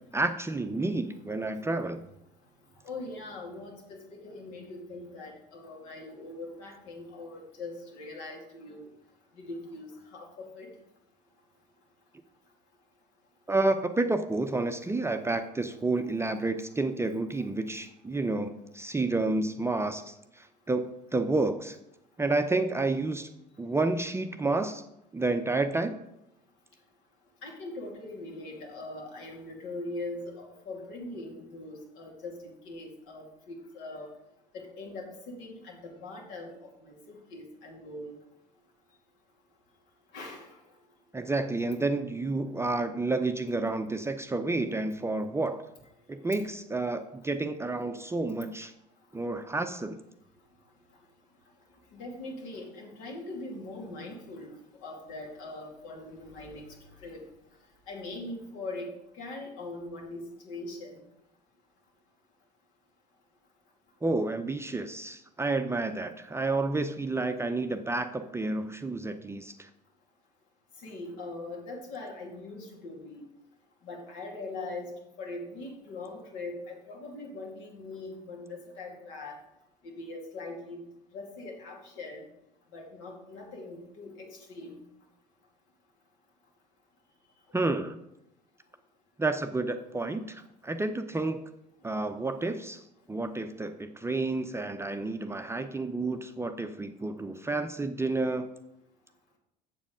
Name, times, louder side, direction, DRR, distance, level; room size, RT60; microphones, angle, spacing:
voice 1, 0.1-2.0 13.5-21.8 22.2-23.3 23.6-24.8 25.1-25.9 41.1-45.6 46.1-48.7 49.1-50.0 64.0-69.7 87.5-88.0 89.2-91.4 91.8-92.8 93.1-98.5, right 2 dB, 10° right, 7 dB, 0.6 m, -30 dB
voice 2, 2.8-8.8 9.4-10.7 27.4-32.3 32.6-34.1 34.5-38.1 40.1-40.5 51.9-54.5 54.8-56.6 57.0-57.2 57.9-58.9 59.2-61.0 70.8-73.2 73.8-74.9 75.2-79.4 79.8-80.8 81.1-82.2 82.7-84.8, left 2 dB, 65° left, 0 dB, 2.6 m, -41 dB
7.5 x 7.3 x 5.0 m, 0.84 s
hypercardioid pair, 65°, 21 cm